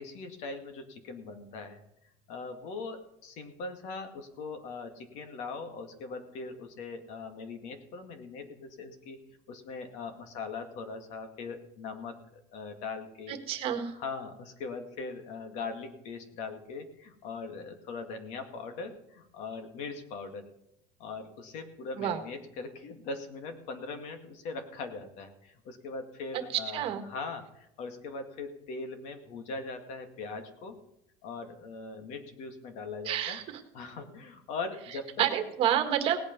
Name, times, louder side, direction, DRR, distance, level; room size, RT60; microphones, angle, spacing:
voice 1, 0.0-1.8 2.3-9.2 9.5-13.4 13.9-20.5 21.0-30.8 31.2-33.4 33.7-35.3, left 4 dB, 55° left, 7 dB, 2.1 m, -40 dB
voice 2, 13.3-13.9 22.0-22.2 26.7-27.0 33.0-33.6 35.2-36.2, right 10 dB, 45° right, 7 dB, 1.7 m, -29 dB
18.0 x 8.7 x 5.4 m, 0.83 s
cardioid pair, 160°, 14 cm